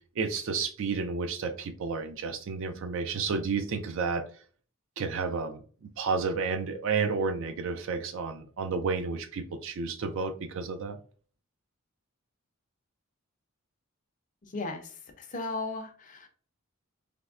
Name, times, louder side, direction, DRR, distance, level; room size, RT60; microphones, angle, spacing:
voice 1, 0.2-4.2 5.0-5.6 6.0-11.0, right 4 dB, 65° right, 7 dB, 0.4 m, -31 dB
voice 2, 14.4-16.3, left 3 dB, 40° left, 5 dB, 0.5 m, -36 dB
3.4 x 2.0 x 2.4 m, 0.41 s
head